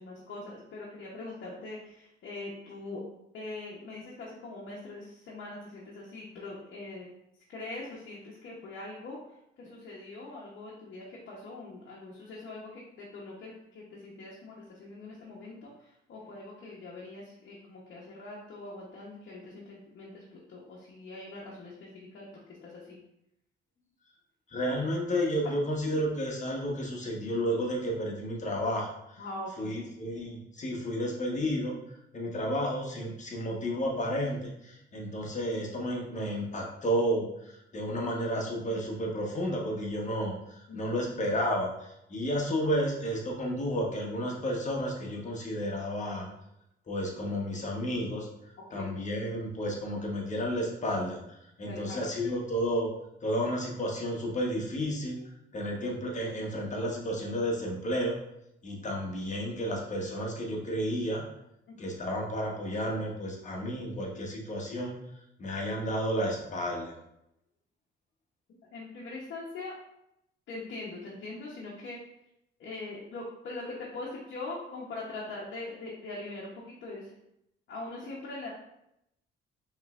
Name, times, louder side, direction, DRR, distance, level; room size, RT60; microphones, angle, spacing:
voice 1, 0.0-3.0 3.3-7.1 7.5-9.2 9.6-22.3 22.6-23.0 25.4-25.5 29.2-29.8 40.7-40.9 48.7-48.9 51.6-52.3 61.7-61.9 68.7-69.7 70.5-72.0 72.6-77.1 77.7-78.5, left 2 dB, 65° left, -5 dB, 1.0 m, -42 dB
voice 2, 24.5-28.9 29.1-29.2 29.6-31.8 32.1-46.3 46.9-48.3 48.7-51.2 51.6-52.9 53.2-55.2 55.5-58.2 58.6-61.2 61.8-64.9 65.4-66.9, equal, 40° left, -1 dB, 1.2 m, -31 dB
5.4 x 3.2 x 2.5 m, 0.81 s
cardioid pair, 90°, 20 cm